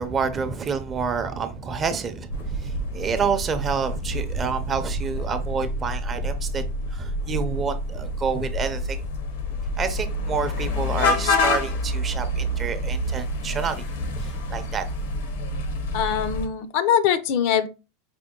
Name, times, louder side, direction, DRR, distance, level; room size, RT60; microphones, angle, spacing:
voice 1, 0.0-6.6 6.9-9.1 9.8-13.8 14.1-14.9, right 5 dB, 25° right, 0.5 m, -28 dB
sound 1, 2.3-16.5, left 1 dB, 80° left, 0.8 m, -28 dB
voice 2, 15.9-17.7, left 8 dB, 60° left, 0.5 m, -22 dB
5.1 x 2.2 x 3.6 m
supercardioid pair, 145°, 0 cm